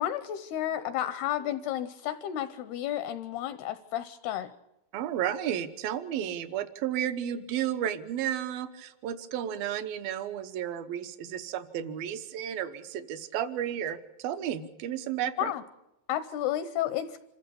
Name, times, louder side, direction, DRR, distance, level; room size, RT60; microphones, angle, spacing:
voice 1, 0.0-4.5 15.4-15.6 16.1-17.2, left 12 dB, 80° left, 13 dB, 2.4 m, -32 dB
voice 2, 4.9-15.5, right 10 dB, 75° right, 10 dB, 2.2 m, -33 dB
27.0 x 15.0 x 7.0 m, 0.93 s
omnidirectional pair, 5.4 m